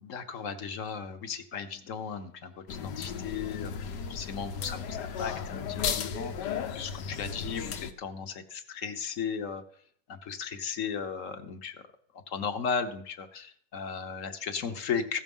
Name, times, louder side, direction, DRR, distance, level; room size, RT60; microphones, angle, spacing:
voice 1, 0.0-9.6 10.1-11.8 12.3-15.2, left 6 dB, 55° left, 8 dB, 1.3 m, -36 dB
sound 1, 2.7-7.9, left 7 dB, 85° left, 1.5 m, -35 dB
15.5 x 6.5 x 5.4 m, 0.63 s
omnidirectional pair, 1.8 m